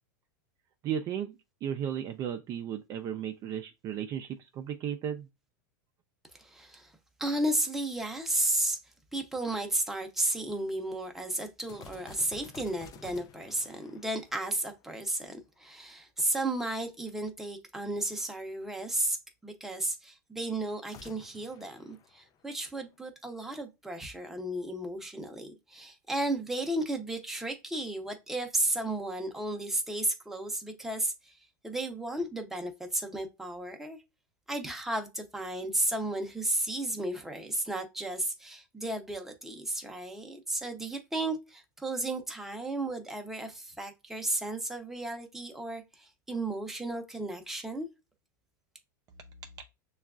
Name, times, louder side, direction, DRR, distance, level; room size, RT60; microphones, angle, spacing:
voice 1, 0.8-5.3, right 9 dB, 35° right, 0.4 m, -35 dB
voice 2, 6.3-19.2 19.4-34.0 34.5-47.9, right 1 dB, 5° right, 0.7 m, -33 dB
sound 1, 11.7-15.1 20.8-22.9, left 6 dB, 35° left, 0.4 m, -52 dB
6.2 x 2.3 x 2.3 m
hypercardioid pair, 120°, 10 cm